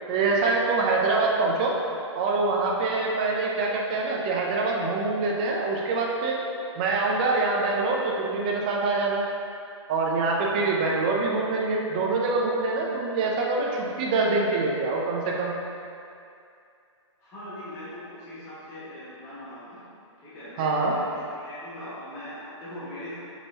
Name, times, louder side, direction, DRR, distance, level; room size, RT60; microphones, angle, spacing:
voice 1, 0.1-1.8 2.1-6.4 6.8-9.2 9.9-15.5 20.6-21.0, right 3 dB, 15° right, -2 dB, 0.4 m, -25 dB
voice 2, 10.4-10.7 17.2-19.8 20.2-23.2, left 1 dB, 15° left, -11 dB, 1.3 m, -41 dB
7.1 x 5.4 x 2.7 m, 2.5 s
hypercardioid pair, 170°, 16 cm